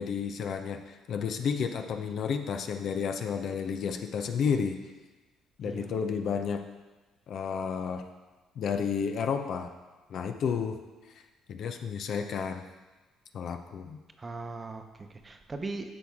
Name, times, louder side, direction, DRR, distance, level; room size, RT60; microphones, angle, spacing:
voice 1, 0.0-4.8 5.6-6.6 7.3-8.1 8.6-9.7 10.1-10.8 11.5-12.6 13.3-14.0, left 6 dB, 65° left, 6 dB, 0.7 m, -31 dB
voice 2, 14.2-15.9, right 3 dB, 25° right, 6 dB, 0.8 m, -39 dB
10.0 x 6.2 x 3.6 m, 1.2 s
supercardioid pair, 80°, 0 cm